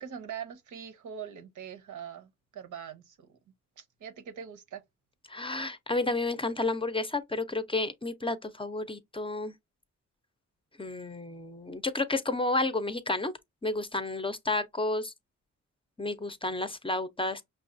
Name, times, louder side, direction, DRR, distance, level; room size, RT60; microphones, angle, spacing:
voice 1, 0.0-3.4 3.8-4.8, right 8 dB, 85° right, 0.8 m, -42 dB
voice 2, 5.3-9.5 10.8-13.3 13.6-15.1 16.0-17.4, left 2 dB, 20° left, 0.5 m, -31 dB
5.5 x 2.3 x 2.5 m
cardioid pair, 85°, 30 cm